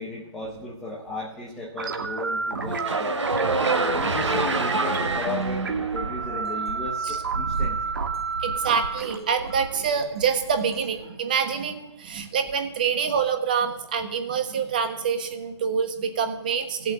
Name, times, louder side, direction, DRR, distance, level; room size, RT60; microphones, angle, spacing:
voice 1, 0.0-3.3 3.8-7.8, left 2 dB, ahead, -6 dB, 0.8 m, -35 dB
sound 1, 1.8-10.7, right 4 dB, 45° right, 2.3 m, -31 dB
sound 2, 2.6-6.8, right 3 dB, 90° right, 3.0 m, -27 dB
sound 3, 3.6-11.0, right 4 dB, 60° right, 1.5 m, -36 dB
voice 2, 8.4-16.9, right 6 dB, 20° right, 7 dB, 1.2 m, -26 dB
17.0 x 8.1 x 8.7 m, 0.95 s
hypercardioid pair, 175°, 15 cm